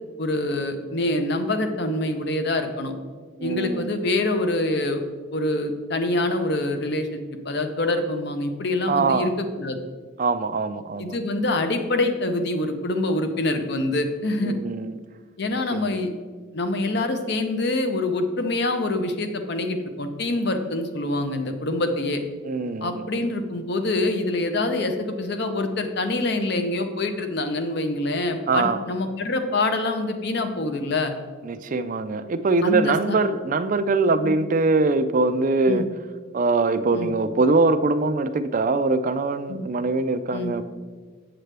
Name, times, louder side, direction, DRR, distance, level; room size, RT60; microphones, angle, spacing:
voice 1, 0.2-2.9 3.4-5.0 5.3-9.8 11.0-14.6 15.4-16.1 16.5-22.2 22.8-31.1 32.6-33.2 34.2-34.3 35.7-35.8 36.9-37.1 39.5-39.6 40.3-40.5, left 2 dB, 55° left, 7 dB, 0.7 m, -25 dB
voice 2, 3.4-4.0 8.9-9.3 10.2-11.2 14.4-15.0 15.7-15.9 22.4-23.1 28.5-28.8 31.4-35.8 36.3-40.6, right 3 dB, 40° right, 10 dB, 0.4 m, -22 dB
7.8 x 7.4 x 3.3 m, 1.5 s
head